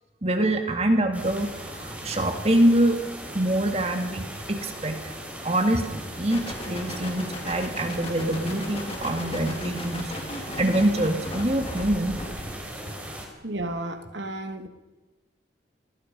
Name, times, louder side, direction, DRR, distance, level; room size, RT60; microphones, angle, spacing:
voice 1, 0.2-3.0 3.3-5.2 5.4-10.0 10.4-12.2, right 1 dB, 35° right, 5 dB, 2.3 m, -25 dB
sound 1, 1.1-13.3, right 1 dB, 10° right, 5.1 m, -39 dB
sound 2, 6.3-12.6, left 1 dB, 30° left, 4.4 m, -36 dB
voice 2, 13.4-14.7, right 1 dB, 75° right, 6 dB, 2.5 m, -32 dB
30.0 x 20.5 x 5.5 m, 1.2 s
head